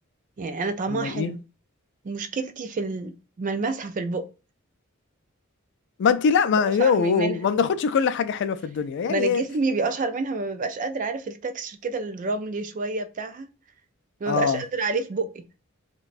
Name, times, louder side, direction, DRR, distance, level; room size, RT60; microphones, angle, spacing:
voice 1, 0.4-1.4 2.0-3.1 3.4-4.3 6.5-7.4 9.1-13.5 14.2-15.4, right 3 dB, 40° right, 0.4 m, -28 dB
voice 2, 0.9-1.3 6.0-9.4 14.3-14.6, left 6 dB, 55° left, 0.3 m, -22 dB
2.5 x 2.2 x 4.0 m
head